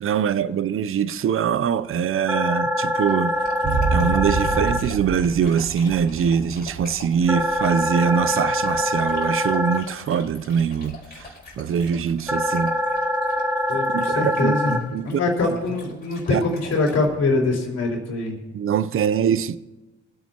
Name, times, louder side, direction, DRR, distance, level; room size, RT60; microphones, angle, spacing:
voice 1, 0.0-3.3 3.9-11.3 11.6-12.8 13.9-15.2 16.3-16.4 18.5-19.6, right 7 dB, 45° right, 0.6 m, -23 dB
sound 1, 2.3-4.8 7.3-9.8 12.3-14.8, left 1 dB, 5° right, 0.8 m, -24 dB
Dog, 2.8-17.1, left 2 dB, 30° left, 4.3 m, -44 dB
sound 2, 3.6-11.0, right 5 dB, 65° right, 2.1 m, -30 dB
voice 2, 13.7-18.4, left 3 dB, 55° left, 4.2 m, -23 dB
24.0 x 8.9 x 2.9 m
cardioid pair, 90°, 30 cm